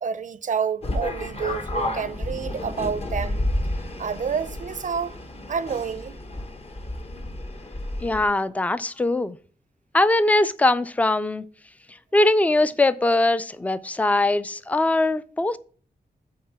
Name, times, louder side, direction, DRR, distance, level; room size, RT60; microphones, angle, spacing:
voice 1, 0.0-3.5 4.0-5.2 5.5-6.2, right 6 dB, 50° right, 0.5 m, -29 dB
sound 1, 0.8-8.3, left 1 dB, 35° left, 1.0 m, -31 dB
voice 2, 8.0-9.4 9.9-11.4 12.1-15.6, left 2 dB, 10° left, 0.3 m, -21 dB
8.7 x 3.7 x 6.8 m
wide cardioid pair, 175°, 16 cm